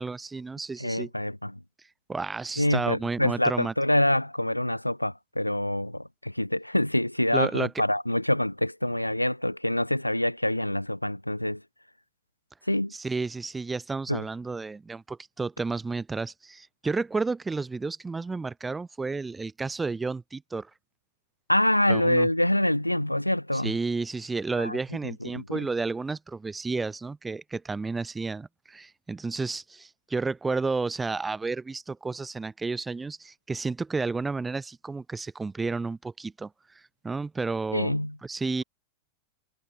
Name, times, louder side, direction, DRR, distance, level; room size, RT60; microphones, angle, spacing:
voice 1, 0.0-1.1 2.1-3.7 7.3-7.7 12.9-20.7 21.9-22.3 23.5-36.5 37.0-37.9 38.2-38.6, right 4 dB, 10° right, 0.5 m, -31 dB
voice 2, 0.8-1.6 2.6-11.6 12.7-12.9 14.1-14.2 21.5-23.8 24.6-24.8 25.0-25.7 37.7-38.2, left 1 dB, 85° left, 0.6 m, -26 dB
figure-of-eight pair, 90°, 0 cm